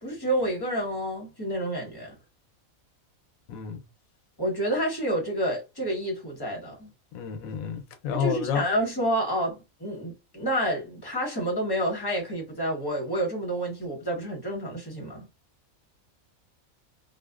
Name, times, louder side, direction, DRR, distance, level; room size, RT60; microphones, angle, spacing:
voice 1, 0.0-2.1 4.4-6.9 8.1-15.3, equal, 20° left, 0.9 m, -29 dB
voice 2, 3.5-3.8 7.1-8.6, left 7 dB, 85° left, 1.0 m, -30 dB
2.4 x 2.3 x 2.3 m
omnidirectional pair, 1.4 m